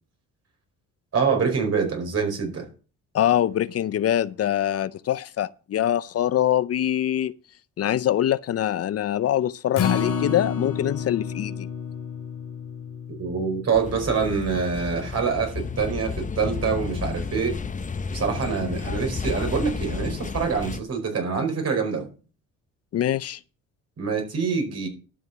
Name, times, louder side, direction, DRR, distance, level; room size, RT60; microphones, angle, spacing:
voice 1, 1.1-2.7 13.1-17.6 18.1-22.1 24.0-24.9, right 5 dB, 55° right, 4.8 m, -25 dB
voice 2, 3.1-7.3 7.8-11.7 22.9-23.4, left 11 dB, 55° left, 0.6 m, -24 dB
Acoustic guitar, 9.7-16.1 16.5-16.6 17.0-17.1, left 7 dB, 80° left, 2.4 m, -31 dB
sound 1, 13.7-20.8, left 5 dB, 25° left, 0.8 m, -32 dB
12.0 x 6.6 x 5.9 m
cardioid pair, 90°, 30 cm